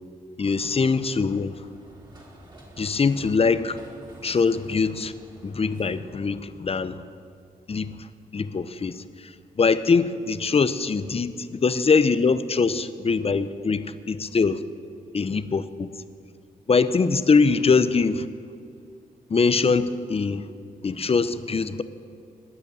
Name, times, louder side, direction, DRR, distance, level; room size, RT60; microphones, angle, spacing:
voice 1, 0.4-1.7 2.8-3.8 4.2-5.1 5.4-7.0 7.7-14.6 15.1-15.9 16.7-18.3 19.3-20.5 20.8-21.8, left 4 dB, 40° left, 13 dB, 0.8 m, -23 dB
sound 1, 0.7-6.0, right 1 dB, 30° right, 3.8 m, -49 dB
20.5 x 8.1 x 7.0 m, 2.4 s
cardioid pair, 70°, 16 cm